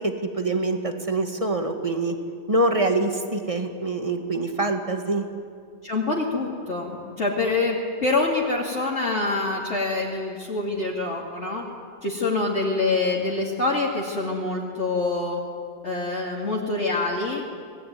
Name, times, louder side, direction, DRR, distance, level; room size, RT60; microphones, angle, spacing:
voice 1, 0.0-2.2 2.5-5.3, right 2 dB, 20° right, 5 dB, 2.0 m, -25 dB
voice 2, 5.8-11.6 12.0-15.4 15.8-17.4, left 3 dB, 40° left, -3 dB, 2.8 m, -25 dB
26.5 x 20.0 x 9.5 m, 2.3 s
omnidirectional pair, 1.9 m